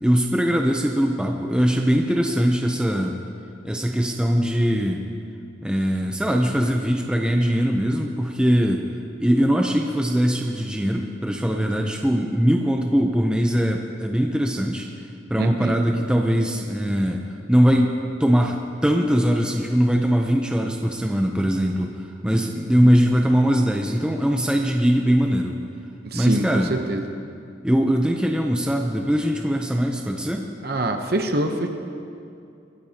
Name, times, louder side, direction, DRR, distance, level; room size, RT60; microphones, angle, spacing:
voice 1, 0.0-3.1 3.6-5.0 5.6-8.9 9.2-17.2 17.5-25.6 26.1-26.7 27.6-30.5, equal, 5° right, 1 dB, 0.6 m, -21 dB
voice 2, 15.4-15.8 22.8-22.9 26.0-27.0 30.6-31.7, right 1 dB, 55° right, 5 dB, 0.9 m, -25 dB
23.0 x 15.5 x 2.9 m, 2.5 s
head